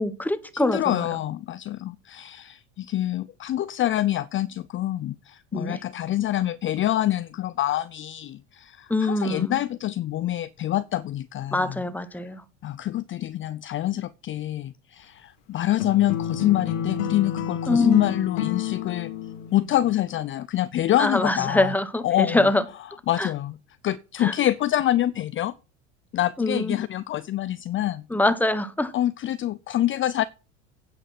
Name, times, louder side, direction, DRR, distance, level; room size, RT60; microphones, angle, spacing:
voice 1, 0.0-1.1 5.5-5.8 8.9-9.6 11.5-12.4 17.7-18.2 21.0-22.6 23.2-23.3 24.2-24.3 26.4-26.8 28.1-28.9, left 2 dB, 5° left, 1.3 m, -24 dB
voice 2, 0.5-11.8 12.6-19.1 19.5-21.7 22.0-22.4 23.1-23.6 23.8-25.5 26.1-28.0 28.9-30.2, left 13 dB, 35° left, 0.5 m, -26 dB
sound 1, 15.8-19.9, left 9 dB, 80° left, 2.1 m, -30 dB
9.2 x 8.0 x 6.0 m
hypercardioid pair, 90°, 36 cm